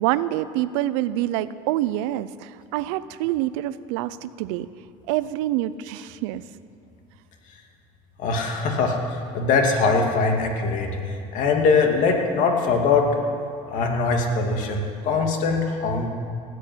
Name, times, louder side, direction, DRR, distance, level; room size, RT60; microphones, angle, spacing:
voice 1, 0.0-4.7 5.1-6.4, right 14 dB, 85° right, 15 dB, 0.6 m, -26 dB
voice 2, 8.2-13.2 13.7-16.1, left 4 dB, 55° left, 2 dB, 2.4 m, -22 dB
17.0 x 8.5 x 9.3 m, 2.4 s
cardioid pair, 135°, 16 cm